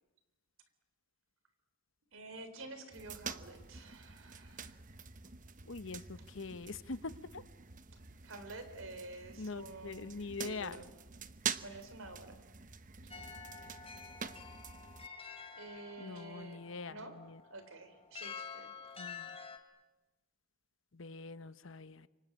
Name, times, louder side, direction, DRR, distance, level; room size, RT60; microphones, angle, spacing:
voice 1, 2.1-4.8 8.2-10.9 11.6-12.4 15.6-17.2 17.5-18.9, right 2 dB, 80° right, 10 dB, 3.7 m, -49 dB
sound 1, 2.9-15.1, right 6 dB, 40° right, 1.0 m, -46 dB
voice 2, 5.6-7.4 9.4-10.8 16.0-17.4 19.0-19.4 20.9-22.1, left 3 dB, 70° left, 14 dB, 1.0 m, -44 dB
sound 2, 13.1-19.6, left 6 dB, 30° left, 2.6 m, -49 dB
28.0 x 24.5 x 8.6 m, 1.1 s
head